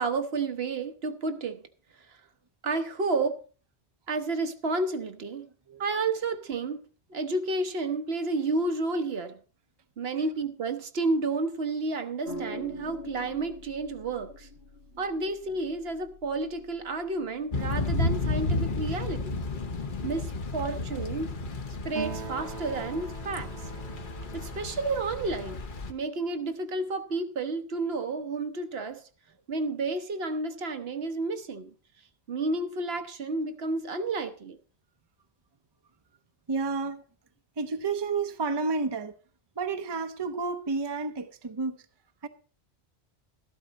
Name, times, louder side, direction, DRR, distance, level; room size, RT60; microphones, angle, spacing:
voice 1, 0.0-1.6 2.6-3.4 4.1-5.5 5.8-6.8 7.1-9.4 10.0-14.5 15.0-19.4 20.0-21.4 21.8-23.5 24.3-25.6 25.9-29.0 29.5-31.7 32.3-34.6, right 3 dB, 65° right, 1.2 m, -31 dB
sound 1, 12.2-20.8, equal, 65° left, 1.6 m, -46 dB
Thunder / Rain, 17.5-25.9, left 2 dB, 50° left, 1.2 m, -32 dB
Acoustic guitar, 22.0-25.8, right 7 dB, 90° right, 1.4 m, -42 dB
voice 2, 36.5-37.0 37.6-39.2 39.6-41.8 42.2-42.3, right 4 dB, 25° right, 0.7 m, -31 dB
13.0 x 12.0 x 4.0 m
omnidirectional pair, 1.1 m